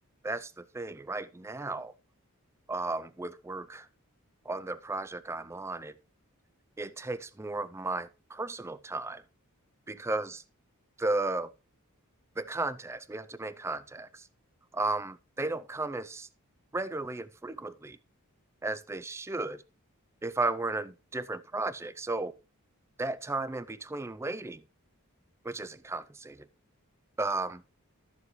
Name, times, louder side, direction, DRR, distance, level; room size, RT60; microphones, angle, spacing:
voice 1, 0.2-1.9 2.7-3.9 4.5-5.9 6.8-9.2 9.9-10.4 11.0-11.5 12.4-14.3 14.7-16.3 16.7-18.0 18.6-19.6 20.2-22.3 23.0-24.6 25.4-26.5 27.2-27.6, right 2 dB, 10° right, 0.3 m, -34 dB
12.5 x 7.1 x 3.1 m
head